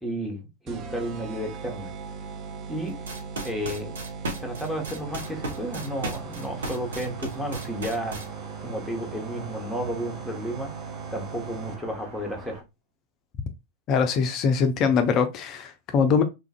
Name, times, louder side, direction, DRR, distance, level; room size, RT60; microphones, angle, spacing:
voice 1, 0.0-1.9 2.7-3.0 3.4-3.9 4.4-8.2 8.6-10.7 11.1-12.6, equal, ahead, 0.9 m, -32 dB
sound 1, 0.7-12.1, right 5 dB, 35° right, 0.4 m, -39 dB
sound 2, 2.9-8.2, right 2 dB, 65° right, 0.8 m, -34 dB
sound 3, 5.1-12.6, right 2 dB, 50° right, 1.1 m, -45 dB
voice 2, 13.9-16.2, left 6 dB, 35° left, 0.4 m, -22 dB
3.2 x 2.4 x 2.3 m
figure-of-eight pair, 90°, 0 cm